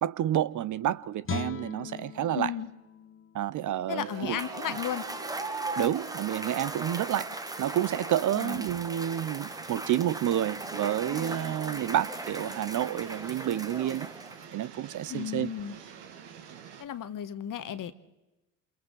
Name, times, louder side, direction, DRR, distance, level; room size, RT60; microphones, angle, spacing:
voice 1, 0.0-2.5 3.3-4.4 5.8-14.1 14.5-15.5, right 11 dB, 45° right, 0.7 m, -29 dB
Guitar, 1.2-4.4 4.8-5.0, left 7 dB, 30° left, 0.9 m, -40 dB
voice 2, 2.3-2.7 3.9-5.0 8.4-8.7 15.1-15.7 16.8-17.9, left 10 dB, 45° left, 1.4 m, -34 dB
sound 1, 4.0-16.8, right 7 dB, 70° right, 2.1 m, -47 dB
Cheering / Applause / Crowd, 4.2-14.6, right 2 dB, 10° right, 1.1 m, -38 dB
28.0 x 27.0 x 3.9 m
hypercardioid pair, 60°, 45 cm